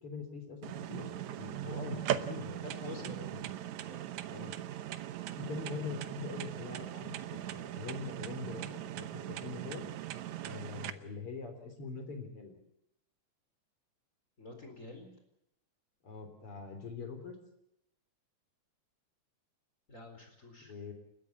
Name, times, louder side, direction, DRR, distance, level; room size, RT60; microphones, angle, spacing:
voice 1, 0.0-3.4 4.3-4.5 5.4-9.9 10.4-12.5 16.0-17.4 20.6-20.9, left 4 dB, 50° left, 7 dB, 4.5 m, -43 dB
sound 1, 0.6-10.9, right 11 dB, 80° right, 2.3 m, -39 dB
voice 2, 2.6-3.3 3.9-4.1 14.4-15.1 19.9-20.7, left 1 dB, 25° left, 4 dB, 4.5 m, -48 dB
29.5 x 13.5 x 8.5 m, 0.79 s
omnidirectional pair, 3.3 m